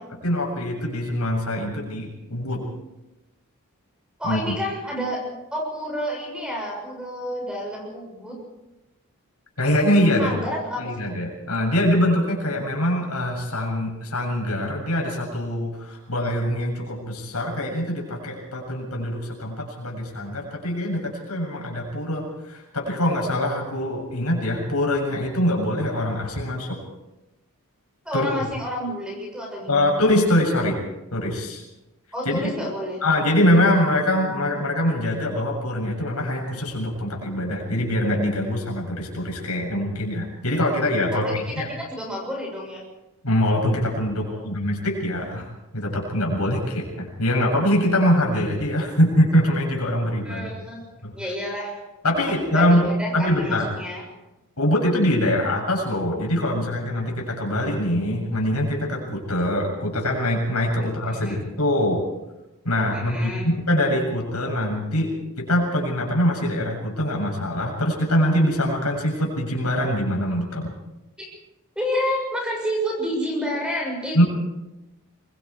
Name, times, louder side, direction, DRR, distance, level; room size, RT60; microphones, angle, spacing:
voice 1, 0.2-2.7 4.2-4.5 9.6-10.3 10.8-26.8 28.1-28.5 29.7-30.8 31.1-31.6 32.2-32.5 33.0-41.7 43.2-45.5 45.7-50.5 51.0-51.1 52.0-52.9 53.1-53.7 54.6-62.0 62.6-65.1 65.4-70.7 74.1-74.2, left 1 dB, 80° left, 0 dB, 7.4 m, -23 dB
voice 2, 4.2-5.2 5.5-8.4 10.2-11.2 28.1-29.9 32.1-33.0 41.1-42.8 44.2-44.5 50.3-50.8 51.2-51.8 52.3-54.0 61.1-61.4 62.9-63.5 71.2-71.4 71.8-74.2, equal, 5° right, -1 dB, 7.0 m, -30 dB
25.0 x 22.5 x 4.9 m, 0.99 s
head